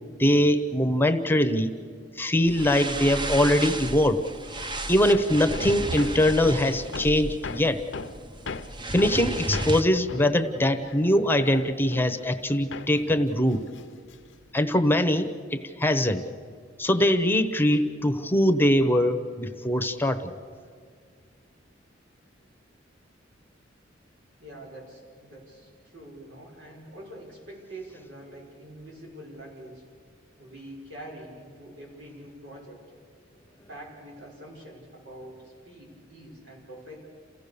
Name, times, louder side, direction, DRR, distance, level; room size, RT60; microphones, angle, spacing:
voice 1, 0.2-1.7 2.2-4.2 4.9-7.8 8.9-13.6 14.5-16.2 16.8-20.3, left 1 dB, 10° left, 8 dB, 0.9 m, -22 dB
sound 1, 2.4-9.8, right 1 dB, 25° right, 0.8 m, -33 dB
Hammer, 5.1-12.5 12.7-14.5, left 4 dB, 75° left, 0.7 m, -39 dB
voice 2, 24.4-29.9 30.4-32.8 33.7-37.0, right 1 dB, 85° right, -2 dB, 6.0 m, -45 dB
28.5 x 16.0 x 6.9 m, 2.1 s
head